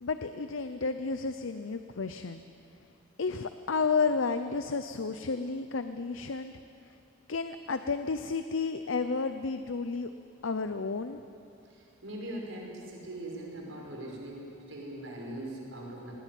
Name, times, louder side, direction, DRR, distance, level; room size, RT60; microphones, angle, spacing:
voice 1, 0.0-2.4 3.2-6.5 7.3-10.1 10.4-11.2, left 4 dB, 85° left, 10 dB, 0.7 m, -31 dB
voice 2, 11.7-16.1, right 1 dB, 85° right, -2 dB, 5.3 m, -41 dB
20.0 x 19.0 x 9.3 m, 2.6 s
head